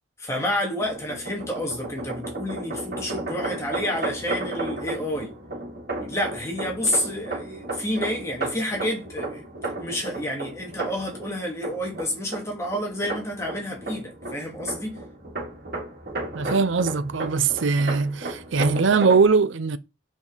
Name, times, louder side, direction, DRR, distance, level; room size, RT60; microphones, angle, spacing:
voice 1, 0.2-5.3 6.0-15.0, left 1 dB, 15° left, 2.3 m, -29 dB
sound 1, 0.8-19.3, right 2 dB, 50° right, 3.3 m, -34 dB
voice 2, 16.3-19.8, right 4 dB, 80° right, 0.6 m, -21 dB
7.1 x 5.4 x 4.1 m
head